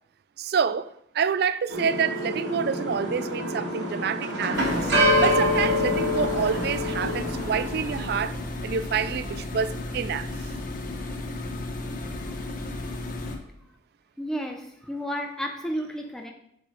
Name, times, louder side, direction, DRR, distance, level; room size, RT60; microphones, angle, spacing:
voice 1, 0.4-4.9 5.2-10.5, right 6 dB, 60° right, 0.4 m, -28 dB
sound 1, 1.7-8.2, left 1 dB, 85° right, 2.2 m, -26 dB
sound 2, 4.5-13.4, left 2 dB, 50° left, 1.2 m, -34 dB
voice 2, 14.2-16.3, equal, 5° left, 0.6 m, -32 dB
7.2 x 6.0 x 5.0 m
head